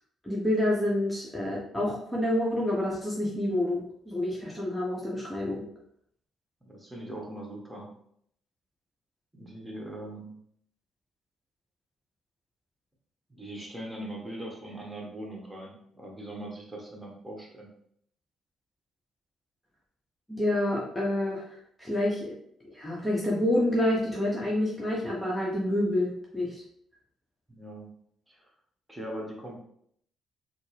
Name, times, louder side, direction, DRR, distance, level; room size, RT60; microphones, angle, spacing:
voice 1, 0.2-5.6 20.3-21.4 21.8-22.3 22.6-26.5, left 1 dB, 10° left, -5 dB, 0.9 m, -28 dB
voice 2, 6.6-7.9 9.3-10.4 13.3-17.7 27.5-27.9 28.3-28.5 28.9-29.6, right 1 dB, 15° right, -2 dB, 1.3 m, -41 dB
4.2 x 2.0 x 3.2 m, 0.68 s
figure-of-eight pair, 40°, 0 cm